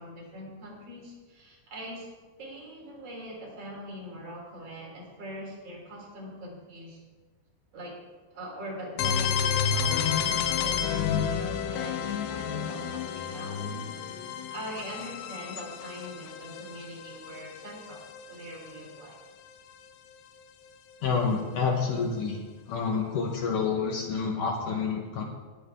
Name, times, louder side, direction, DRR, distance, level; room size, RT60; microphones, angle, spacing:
voice 1, 0.0-2.1 2.4-7.0 7.7-8.0 8.3-18.0 18.3-19.2, equal, 40° right, -4 dB, 4.0 m, -42 dB
sound 1, 9.0-18.7, left 7 dB, 90° left, 3.0 m, -30 dB
voice 2, 21.0-22.4 22.7-25.2, left 5 dB, 70° left, 1 dB, 2.1 m, -28 dB
18.5 x 9.4 x 3.5 m, 1.3 s
omnidirectional pair, 4.9 m